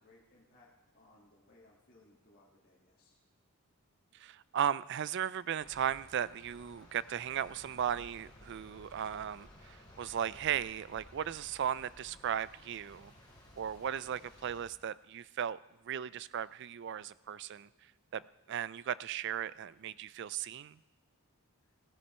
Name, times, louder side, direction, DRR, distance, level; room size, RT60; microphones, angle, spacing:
voice 1, 0.0-3.2 21.6-21.7, left 2 dB, 40° left, -6 dB, 2.1 m, -64 dB
voice 2, 4.1-13.1 13.6-15.6 15.8-17.7 18.1-18.2 18.5-20.8, right 9 dB, 55° right, 19 dB, 0.3 m, -36 dB
sound 1, 5.6-14.7, left 1 dB, 20° left, 3.6 m, -57 dB
16.5 x 11.0 x 4.4 m, 1.1 s
head